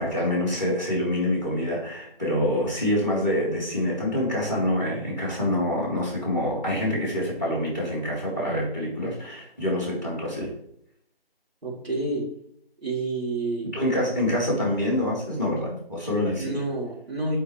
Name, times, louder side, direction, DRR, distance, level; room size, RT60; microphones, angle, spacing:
voice 1, 0.0-10.5 13.7-16.5, left 1 dB, 20° right, -3 dB, 3.1 m, -26 dB
voice 2, 11.6-12.3 12.8-13.7 16.4-17.4, right 2 dB, 80° right, -3 dB, 3.5 m, -29 dB
11.5 x 4.8 x 3.3 m, 0.71 s
figure-of-eight pair, 175°, 30 cm